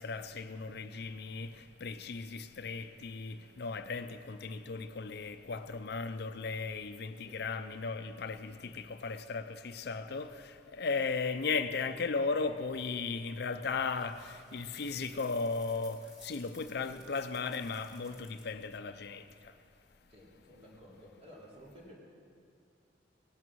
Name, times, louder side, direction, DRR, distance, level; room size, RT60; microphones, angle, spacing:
voice 1, 0.0-19.6, left 4 dB, 60° left, 0.6 m, -36 dB
sound 1, 13.7-18.6, left 2 dB, 5° right, 2.1 m, -58 dB
voice 2, 20.1-22.0, equal, 35° right, 3.3 m, -54 dB
17.5 x 11.0 x 6.3 m
head